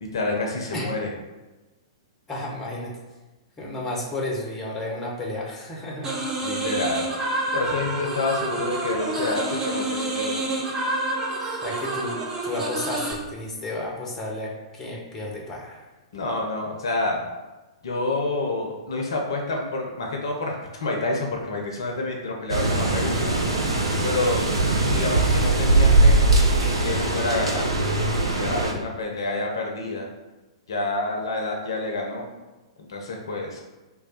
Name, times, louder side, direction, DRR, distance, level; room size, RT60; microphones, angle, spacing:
voice 1, 0.0-1.1 6.4-7.1 7.5-10.6 16.1-17.2 17.8-20.5 20.8-23.4 24.0-24.4 24.9-26.2 26.6-27.7 28.0-30.1 30.7-32.3 32.9-33.6, left 2 dB, 60° left, 0 dB, 0.5 m, -28 dB
voice 2, 2.3-3.0 3.6-6.2 11.6-15.8, left 1 dB, 15° left, -2 dB, 0.8 m, -32 dB
sound 1, 6.0-13.1, right 2 dB, 20° right, 0.6 m, -28 dB
sound 2, 22.5-28.7, right 2 dB, 75° right, 0.5 m, -21 dB
3.2 x 2.2 x 4.1 m, 1.1 s
figure-of-eight pair, 105°, 3 cm